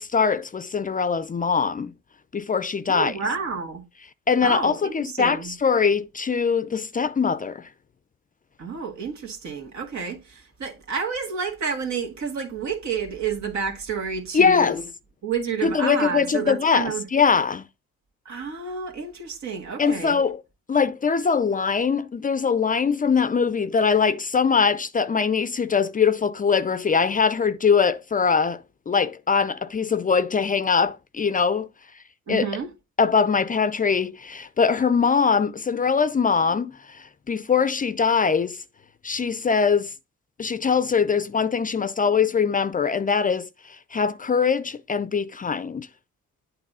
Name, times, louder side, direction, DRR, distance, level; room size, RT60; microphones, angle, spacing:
voice 1, 0.0-1.9 2.3-3.1 4.3-7.7 14.3-14.8 15.6-17.6 19.8-20.4 20.7-31.7 32.3-32.5 33.0-38.6 39.0-39.9 40.4-45.9, left 6 dB, 30° left, 0.5 m, -22 dB
voice 2, 2.9-3.8 4.4-5.5 8.6-14.8 15.2-17.1 18.3-20.2 32.3-32.7, right 5 dB, 65° right, 2.2 m, -30 dB
8.5 x 3.3 x 5.4 m
cardioid pair, 90°, 30 cm